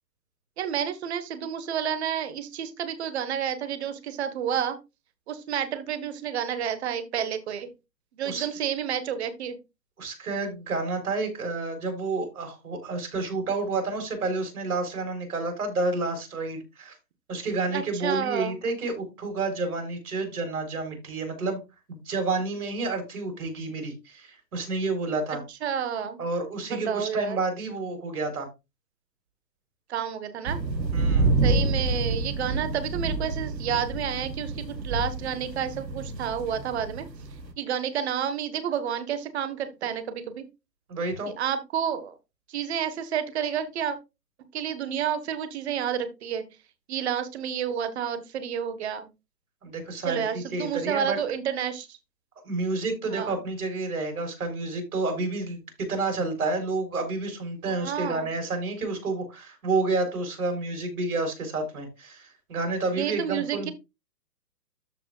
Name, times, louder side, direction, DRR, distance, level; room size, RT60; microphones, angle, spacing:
voice 1, 0.6-4.8 5.3-7.7 8.2-9.6 17.7-18.6 25.3-26.2 26.7-27.4 29.9-30.6 31.4-37.1 37.6-40.4 41.3-42.1 42.5-44.0 44.5-46.4 46.9-49.1 50.0-52.0 53.1-53.4 57.6-58.3 62.9-63.7, right 8 dB, 40° right, 10 dB, 1.5 m, -30 dB
voice 2, 10.0-16.9 17.3-21.6 21.9-25.4 26.2-28.5 30.9-31.3 40.9-41.3 49.6-51.2 52.4-63.7, right 3 dB, 60° right, 5 dB, 4.3 m, -30 dB
sound 1, 30.5-37.5, right 3 dB, 80° right, 1.6 m, -28 dB
13.5 x 4.9 x 2.4 m, 0.25 s
figure-of-eight pair, 130°, 50 cm